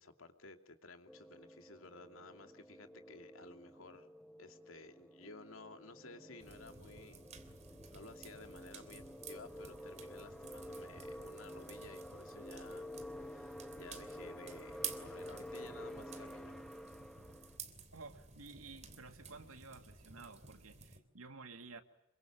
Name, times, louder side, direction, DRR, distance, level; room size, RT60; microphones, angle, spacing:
voice 1, 0.0-4.1 4.4-7.2 7.9-12.9 13.2-16.6, left 3 dB, 70° left, 6 dB, 2.7 m, -55 dB
sound 1, 1.1-17.6, equal, ahead, 1.7 m, -50 dB
sound 2, 6.4-21.0, right 6 dB, 35° right, 3.1 m, -52 dB
voice 2, 17.9-21.8, right 3 dB, 90° right, 7 dB, 2.4 m, -53 dB
28.0 x 24.0 x 7.5 m, 0.88 s
head